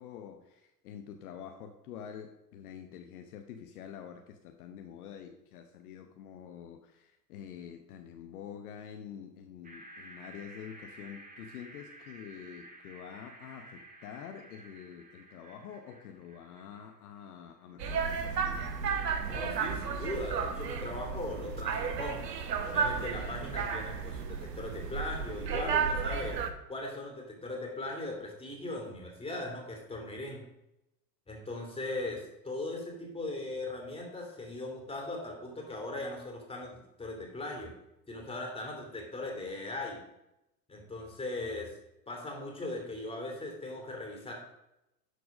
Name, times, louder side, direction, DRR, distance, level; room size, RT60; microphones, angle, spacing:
voice 1, 0.0-18.8, left 8 dB, 60° left, 5 dB, 1.0 m, -47 dB
sound 1, 9.6-17.9, right 2 dB, 15° right, 1.6 m, -53 dB
sound 2, 17.8-26.5, right 6 dB, 75° right, 1.1 m, -33 dB
voice 2, 19.2-22.2 22.6-26.4 26.7-30.4 31.3-37.7 38.1-40.0 40.7-41.7 42.1-44.3, left 2 dB, 10° left, 0 dB, 2.8 m, -39 dB
11.5 x 4.7 x 5.0 m, 0.90 s
figure-of-eight pair, 90°, 49 cm